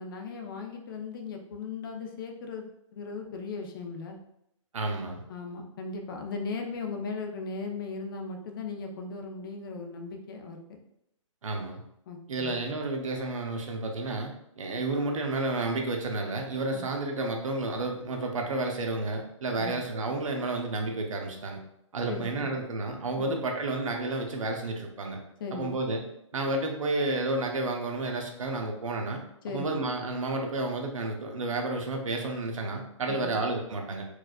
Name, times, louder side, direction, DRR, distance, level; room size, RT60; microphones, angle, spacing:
voice 1, 0.0-2.7 2.9-4.2 5.3-10.8 12.1-12.6 16.7-16.8 19.6-19.8 22.1-22.5 23.2-23.3 25.4-25.7 29.4-29.8 33.1-33.4, left 4 dB, 45° left, 3 dB, 0.6 m, -37 dB
voice 2, 4.7-5.2 11.4-11.8 12.3-21.6 21.9-25.2 25.5-26.0 26.3-29.2 29.5-34.0, right 2 dB, 80° right, 2 dB, 0.8 m, -31 dB
4.6 x 2.4 x 2.3 m, 0.77 s
hypercardioid pair, 155°, 17 cm